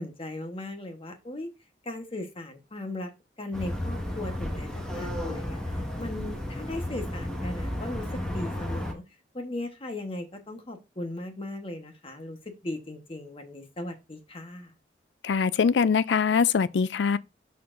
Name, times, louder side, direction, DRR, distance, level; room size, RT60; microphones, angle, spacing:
voice 1, 0.0-1.5 1.8-3.1 3.4-9.0 9.3-14.7, left 1 dB, 30° left, 1.2 m, -38 dB
sound 1, 3.5-8.9, left 1 dB, 5° left, 1.5 m, -33 dB
voice 2, 15.2-17.2, left 6 dB, 75° left, 0.4 m, -23 dB
12.0 x 4.3 x 2.6 m
head